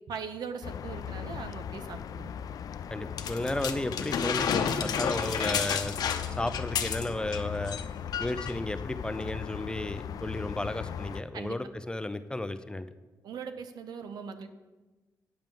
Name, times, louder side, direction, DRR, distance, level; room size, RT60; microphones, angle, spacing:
voice 1, 0.0-2.3 11.3-11.6 13.2-14.5, right 6 dB, 80° right, 9 dB, 0.9 m, -40 dB
sound 1, 0.6-11.2, left 8 dB, 65° left, 0.4 m, -39 dB
voice 2, 2.9-6.0 6.4-7.8 8.2-12.9, left 1 dB, 15° left, 11 dB, 0.5 m, -33 dB
sound 2, 3.2-7.4 7.7-7.8 8.1-8.6 9.3-9.4, left 7 dB, 80° left, 0.7 m, -31 dB
9.1 x 5.3 x 7.5 m, 1.2 s
cardioid pair, 105°, 7 cm